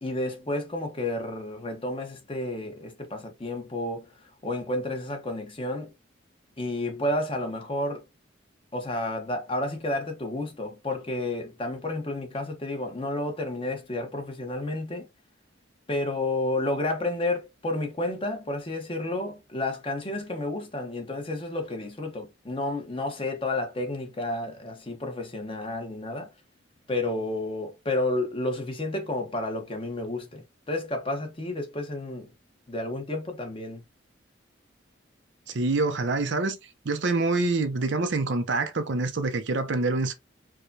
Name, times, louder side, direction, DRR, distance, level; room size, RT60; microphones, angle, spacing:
voice 1, 0.0-4.1 4.4-5.9 6.6-8.0 8.7-15.1 15.9-26.3 26.9-32.3 32.7-33.8, left 2 dB, 25° left, 0.9 m, -31 dB
voice 2, 35.5-36.6 36.8-40.1, right 3 dB, 65° right, 0.6 m, -26 dB
4.7 x 2.2 x 2.6 m
head